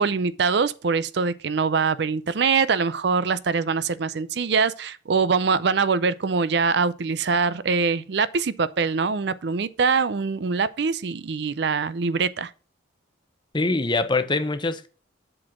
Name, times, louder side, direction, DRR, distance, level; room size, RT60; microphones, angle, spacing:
voice 1, 0.0-12.5, right 5 dB, 60° right, 0.5 m, -23 dB
voice 2, 13.5-14.9, left 3 dB, 25° left, 0.7 m, -23 dB
7.7 x 4.2 x 5.9 m
head